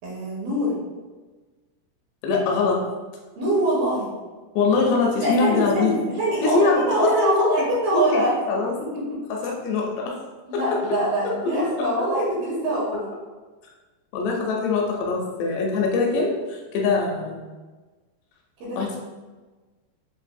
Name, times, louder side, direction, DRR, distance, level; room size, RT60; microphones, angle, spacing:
voice 1, 0.0-0.8 3.4-4.1 5.2-8.4 8.9-9.2 10.5-13.1 18.6-18.8, right 1 dB, 70° right, -6 dB, 2.5 m, -24 dB
voice 2, 2.2-2.8 4.6-6.0 6.4-7.3 7.9-8.2 8.5-8.7 9.4-10.2 10.5-10.6 14.1-17.4 18.8-19.0, left 4 dB, 80° left, -1 dB, 2.6 m, -23 dB
7.6 x 2.6 x 2.6 m, 1.3 s
omnidirectional pair, 5.0 m